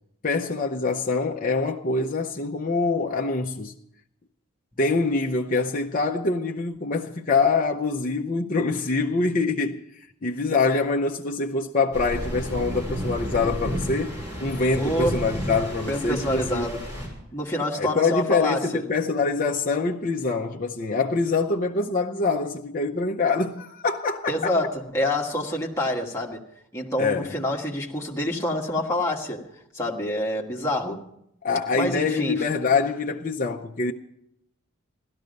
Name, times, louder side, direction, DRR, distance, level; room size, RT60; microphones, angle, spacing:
voice 1, 0.2-3.7 4.8-9.8 10.2-14.1 14.4-16.7 17.8-24.5 27.0-27.4 31.4-33.9, left 3 dB, 40° left, 0.7 m, -25 dB
sound 1, 11.9-17.1, equal, 15° right, 5.8 m, -31 dB
voice 2, 14.8-15.2 15.9-17.0 17.3-18.8 24.3-26.4 26.7-29.5 29.7-31.0 31.7-32.4, left 1 dB, 15° left, 1.5 m, -27 dB
16.5 x 13.0 x 5.3 m
head